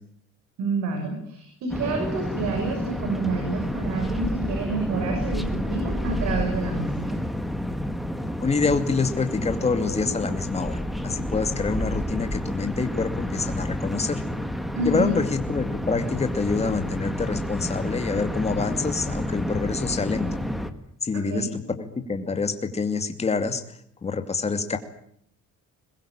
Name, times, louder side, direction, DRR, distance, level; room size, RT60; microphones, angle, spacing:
voice 1, 0.6-7.2 14.7-15.1 21.3-21.5, right 3 dB, 70° right, 3 dB, 6.8 m, -28 dB
sound 1, 1.7-20.7, equal, ahead, 1.7 m, -30 dB
voice 2, 8.4-10.8 11.0-14.2 14.8-20.3 21.0-21.5 21.7-23.6 24.0-24.8, left 4 dB, 20° left, 7 dB, 2.5 m, -26 dB
22.5 x 21.5 x 8.9 m, 0.67 s
cardioid pair, 150°, 29 cm